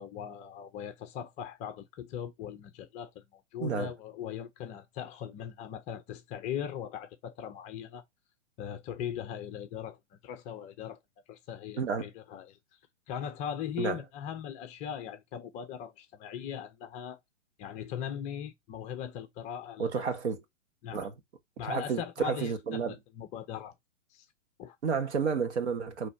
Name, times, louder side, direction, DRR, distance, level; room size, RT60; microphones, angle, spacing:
voice 1, 0.0-8.0 8.6-11.0 11.3-12.6 13.1-17.2 17.6-20.1 20.8-21.1 21.6-22.8 23.1-23.7 24.1-24.3 24.6-24.8, left 9 dB, 20° left, 0.6 m, -39 dB
voice 2, 3.6-3.9 11.8-12.1 13.8-14.0 19.8-20.4 20.9-21.1 21.6-22.9 24.8-26.1, right 5 dB, 65° right, 1.5 m, -31 dB
6.1 x 3.2 x 2.6 m
hypercardioid pair, 120°, 37 cm